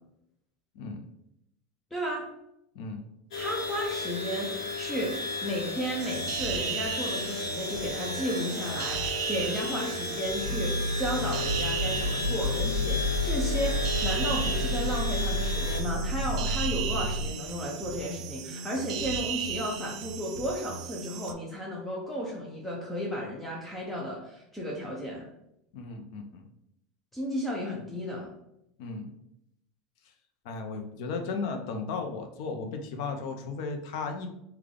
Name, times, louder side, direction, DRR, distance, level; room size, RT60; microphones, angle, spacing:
voice 1, 0.7-1.1 2.7-3.0 25.7-26.5 28.8-29.1 30.4-34.3, left 4 dB, 60° left, 5 dB, 0.6 m, -35 dB
voice 2, 1.9-2.3 3.4-25.3 27.1-28.3, equal, 5° left, -3 dB, 0.5 m, -33 dB
sound 1, 3.3-15.8, left 3 dB, 80° left, 1.1 m, -34 dB
sound 2, 6.0-21.3, right 7 dB, 80° right, 0.4 m, -36 dB
sound 3, 10.4-17.3, left 1 dB, 30° right, 1.3 m, -30 dB
3.4 x 2.3 x 3.6 m, 0.81 s
supercardioid pair, 165°, 3 cm